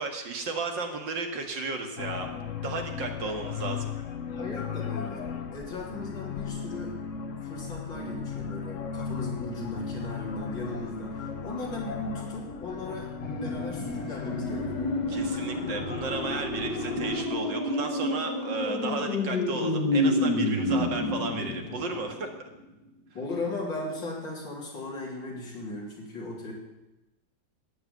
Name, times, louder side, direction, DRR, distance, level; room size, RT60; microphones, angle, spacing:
voice 1, 0.0-2.3 2.6-3.9 15.1-22.3, right 3 dB, 80° right, 4 dB, 2.6 m, -34 dB
sound 1, 2.0-17.3, left 6 dB, 50° left, 1.3 m, -36 dB
voice 2, 4.3-5.3 5.5-7.0 7.4-13.1 13.4-15.0 23.1-26.5, left 2 dB, 90° left, -3 dB, 4.1 m, -37 dB
sound 2, 13.2-22.3 22.6-22.7, left 1 dB, 65° left, 2.3 m, -29 dB
13.0 x 9.0 x 9.4 m, 1.0 s
omnidirectional pair, 2.0 m